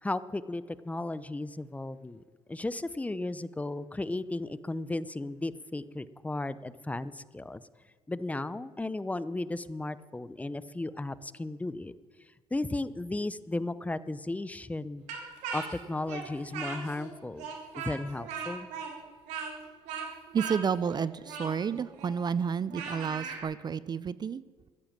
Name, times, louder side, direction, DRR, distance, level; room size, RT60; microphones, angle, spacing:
voice 1, 0.0-2.2 2.5-7.6 8.1-11.9 12.5-15.0 15.5-17.5 17.7-18.7, left 2 dB, 10° left, 15 dB, 0.6 m, -35 dB
Speech, 15.1-17.1 17.4-23.4, right 6 dB, 85° right, 3.4 m, -39 dB
voice 2, 20.3-24.4, right 6 dB, 35° right, 17 dB, 0.5 m, -31 dB
14.0 x 10.5 x 7.4 m, 1.4 s
supercardioid pair, 80°, 12 cm